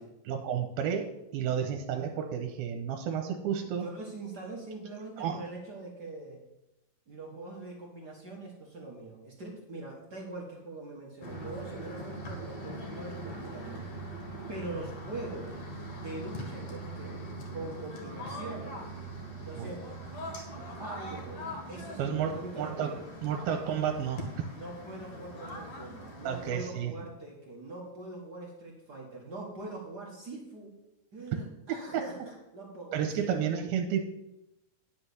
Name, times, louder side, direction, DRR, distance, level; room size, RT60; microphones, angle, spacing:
voice 1, 0.3-3.9 5.2-5.4 19.6-19.7 22.0-22.9 23.2-24.3 26.3-26.9 31.7-32.0 32.9-34.0, right 8 dB, 85° right, 5 dB, 2.6 m, -31 dB
voice 2, 3.7-6.4 7.1-13.9 14.5-15.6 15.9-17.2 17.5-18.8 19.4-20.0 20.5-23.0 24.5-30.8 31.1-33.3, right 2 dB, 55° right, -2 dB, 1.1 m, -43 dB
sound 1, 11.2-26.5, right 1 dB, 50° left, 2.7 m, -41 dB
10.0 x 5.8 x 7.0 m, 0.92 s
omnidirectional pair, 4.4 m